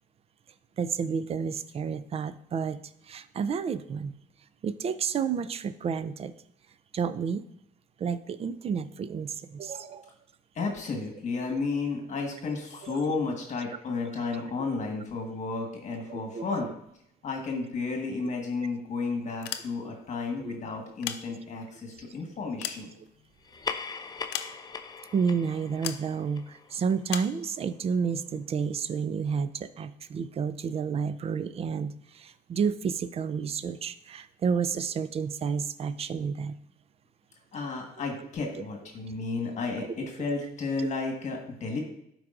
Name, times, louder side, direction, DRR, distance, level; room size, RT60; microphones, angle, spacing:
voice 1, 0.8-2.8 3.1-4.1 4.6-6.3 6.9-7.4 8.0-10.1 12.8-13.0 16.1-16.4 20.4-20.6 25.1-36.6 39.8-39.9, right 6 dB, 35° right, 13 dB, 0.4 m, -30 dB
voice 2, 10.5-16.7 17.2-22.9 37.5-41.8, left 4 dB, 45° left, 2 dB, 1.5 m, -32 dB
sound 1, 19.3-20.1 20.8-21.8 22.3-23.5 24.3-24.9 25.8-26.1 27.1-27.4, left 11 dB, 85° left, 0.5 m, -37 dB
sound 2, 23.4-28.3, left 5 dB, 25° left, 0.4 m, -41 dB
12.0 x 4.8 x 2.5 m, 0.76 s
cardioid pair, 110°, 17 cm